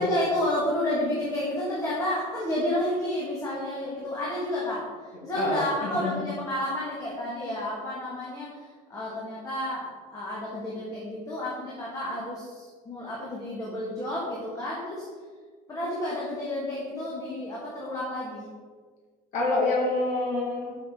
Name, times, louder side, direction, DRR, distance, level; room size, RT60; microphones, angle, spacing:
voice 1, 0.0-15.1 15.7-18.4, left 1 dB, 20° left, -6 dB, 1.5 m, -31 dB
voice 2, 5.4-6.2 19.3-20.7, left 2 dB, 50° left, -3 dB, 1.9 m, -27 dB
6.2 x 5.8 x 4.6 m, 1.5 s
cardioid pair, 165°, 16 cm